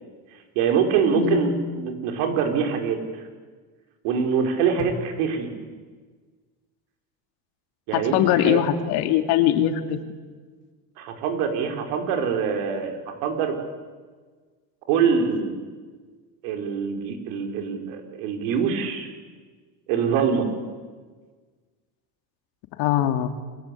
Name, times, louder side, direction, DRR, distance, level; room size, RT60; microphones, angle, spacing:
voice 1, 0.6-3.2 4.0-5.5 7.9-8.6 11.0-13.5 14.9-15.5 16.4-19.1 19.9-20.5, right 6 dB, 80° right, 4 dB, 5.5 m, -24 dB
voice 2, 1.1-1.5 4.8-4.9 7.9-10.0 22.8-23.3, left 11 dB, 75° left, 7 dB, 3.0 m, -21 dB
28.5 x 22.0 x 8.7 m, 1.5 s
supercardioid pair, 105°, 39 cm